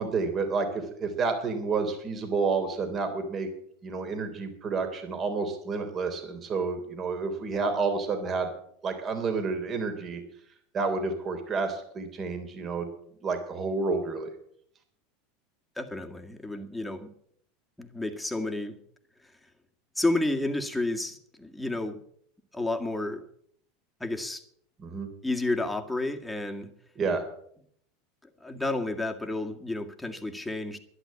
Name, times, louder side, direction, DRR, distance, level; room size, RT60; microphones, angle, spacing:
voice 1, 0.0-3.5 3.8-8.5 8.8-10.2 10.7-12.9 13.2-14.3 24.8-25.1 27.0-27.2, right 4 dB, 35° right, 3.4 m, -30 dB
voice 2, 15.8-17.1 17.8-18.8 20.0-22.0 22.5-23.2 24.0-24.4 25.2-26.7 28.4-30.8, left 2 dB, 5° left, 2.0 m, -31 dB
11.5 x 11.5 x 8.4 m
hypercardioid pair, 100°, 0 cm